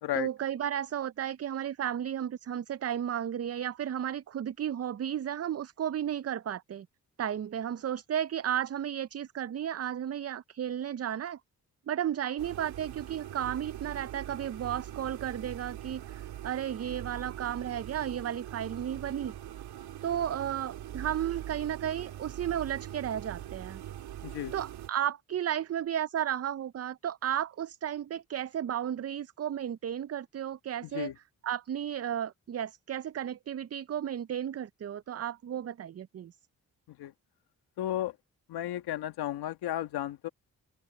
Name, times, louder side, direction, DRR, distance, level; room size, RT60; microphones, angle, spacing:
voice 1, 0.1-6.9 7.2-11.4 11.9-19.3 20.0-23.8 24.5-31.1 31.4-36.3, right 10 dB, 40° right, 0.5 m, -33 dB
sound 1, 12.4-24.9, right 12 dB, 85° right, 2.5 m, -42 dB
voice 2, 24.2-24.5 30.8-31.1 36.9-37.1 37.8-38.2 38.5-40.3, left 13 dB, 85° left, 1.6 m, -34 dB
supercardioid pair, 50°, 37 cm